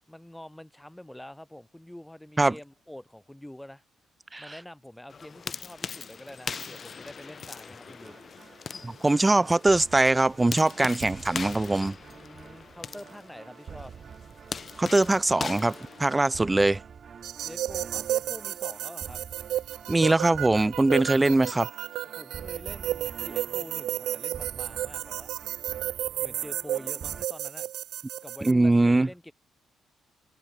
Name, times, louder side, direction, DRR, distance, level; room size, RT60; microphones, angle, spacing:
voice 1, 0.1-3.8 4.4-8.2 12.0-13.9 17.4-19.2 22.0-25.3 26.2-27.7 28.2-29.3, left 1 dB, 5° left, 5.9 m, -46 dB
sound 1, 5.1-16.6, left 5 dB, 40° left, 0.8 m, -40 dB
sound 2, 7.9-27.3, right 7 dB, 50° right, 1.5 m, -47 dB
voice 2, 8.8-11.9 14.8-15.7 16.0-16.8 19.9-21.7 28.4-29.1, right 2 dB, 15° right, 0.4 m, -22 dB
sound 3, 17.2-28.5, right 13 dB, 80° right, 0.8 m, -33 dB
cardioid pair, 90°, 0 cm